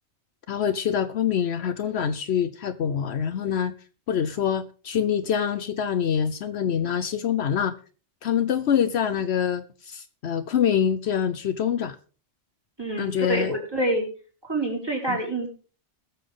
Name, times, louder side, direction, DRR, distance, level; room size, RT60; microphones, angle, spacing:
voice 1, 0.5-3.7 4.1-7.7 8.2-12.0 13.0-13.5 15.1-15.2, left 8 dB, 70° left, 0.9 m, -25 dB
voice 2, 12.8-14.1 14.5-15.5, right 1 dB, 20° right, 4.5 m, -26 dB
21.0 x 7.1 x 3.7 m
omnidirectional pair, 1.2 m